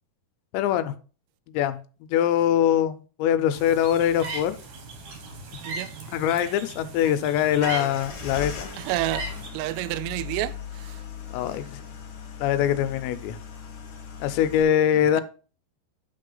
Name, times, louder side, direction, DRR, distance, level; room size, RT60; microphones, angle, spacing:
voice 1, 0.5-0.9 1.5-4.6 6.1-8.7 11.3-11.8 12.4-13.4 14.2-15.2, left 10 dB, 90° left, 2.9 m, -23 dB
sound 1, 3.5-9.5, right 3 dB, 60° right, 1.9 m, -38 dB
sound 2, 7.6-14.6, left 7 dB, 60° left, 2.2 m, -38 dB
voice 2, 8.8-9.2 9.5-10.5 15.2-15.3, right 17 dB, 80° right, 2.6 m, -28 dB
11.0 x 3.7 x 3.9 m
omnidirectional pair, 5.1 m